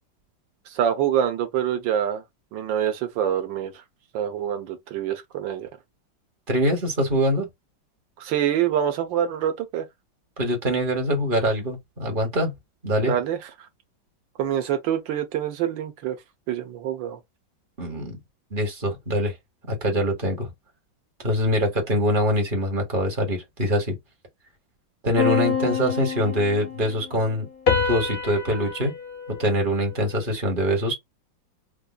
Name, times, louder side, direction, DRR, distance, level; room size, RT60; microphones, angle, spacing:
voice 1, 0.7-2.2 2.5-3.7 4.1-5.7 8.2-9.8 13.1-13.4 14.4-16.2 16.5-17.2, right 10 dB, 80° right, 1.6 m, -25 dB
voice 2, 6.5-7.5 10.4-12.5 12.8-13.1 17.8-18.2 18.5-19.3 19.7-20.5 21.2-24.0 25.0-27.5 27.8-28.9 29.3-30.9, equal, 30° right, 1.6 m, -24 dB
sound 1, 25.2-26.9 27.7-30.3, left 6 dB, 45° left, 0.8 m, -27 dB
5.1 x 2.6 x 2.3 m
omnidirectional pair, 2.0 m